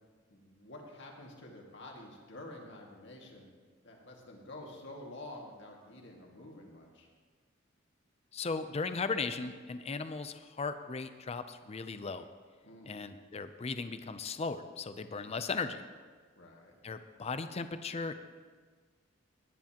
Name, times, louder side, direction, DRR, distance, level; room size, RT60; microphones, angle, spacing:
voice 1, 0.3-3.5 3.8-7.1 12.6-13.1 16.4-16.7, left 1 dB, 65° left, -1 dB, 2.0 m, -49 dB
voice 2, 8.3-12.3 12.9-15.8 16.8-18.1, left 4 dB, 35° left, 10 dB, 0.5 m, -37 dB
17.5 x 9.6 x 2.9 m, 1.5 s
head